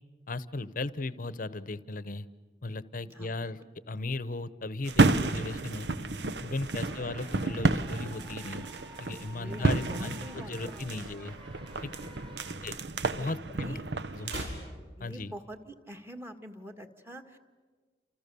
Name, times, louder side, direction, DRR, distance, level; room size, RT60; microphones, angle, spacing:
voice 1, 0.3-2.3 2.6-3.6 3.9-5.9 6.4-8.6 9.0-11.4 11.8-12.1 12.6-12.8 13.2-13.8 14.1-14.3 15.0-15.3, left 2 dB, 50° left, 16 dB, 0.9 m, -36 dB
sound 1, 4.8-14.4, right 3 dB, 70° right, 1.0 m, -31 dB
voice 2, 6.6-7.1 9.3-10.9 11.9-12.4 13.1-13.8 15.0-17.4, equal, 15° right, 5 dB, 1.7 m, -46 dB
sound 2, 6.7-12.5, equal, 30° right, 3.3 m, -52 dB
sound 3, 14.1-15.7 16.0-16.1, equal, 85° right, 6.2 m, -46 dB
30.0 x 28.5 x 6.9 m, 1.5 s
head